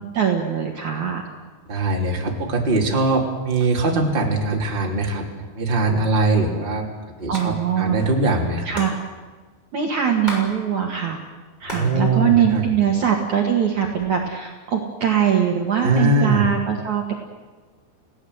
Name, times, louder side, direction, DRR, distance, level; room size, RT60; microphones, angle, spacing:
voice 1, 0.1-1.2 7.3-8.0 8.7-9.0 9.7-11.2 11.6-17.1, right 8 dB, 50° right, 1 dB, 2.7 m, -22 dB
voice 2, 1.7-6.8 7.2-8.7 11.7-12.7 15.8-16.5, right 2 dB, 15° right, 0 dB, 2.7 m, -21 dB
Hands, 7.3-7.5 7.7-7.8 8.0-10.5 10.8-11.9 12.3-13.1 13.6-14.2, equal, 10° left, 6.5 m, -34 dB
30.0 x 17.5 x 8.1 m, 1.3 s
omnidirectional pair, 5.1 m